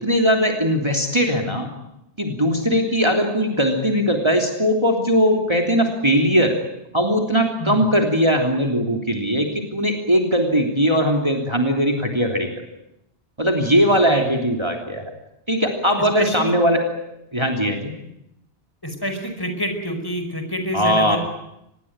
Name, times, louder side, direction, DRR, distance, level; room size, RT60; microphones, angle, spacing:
voice 1, 0.0-1.7 2.2-6.6 6.9-12.5 13.4-15.1 15.5-16.8 17.3-17.9 20.7-21.2, equal, 25° right, 3 dB, 3.3 m, -19 dB
voice 2, 16.0-16.5 18.8-21.2, equal, 20° left, 6 dB, 5.1 m, -27 dB
25.5 x 21.0 x 9.0 m, 0.82 s
omnidirectional pair, 1.1 m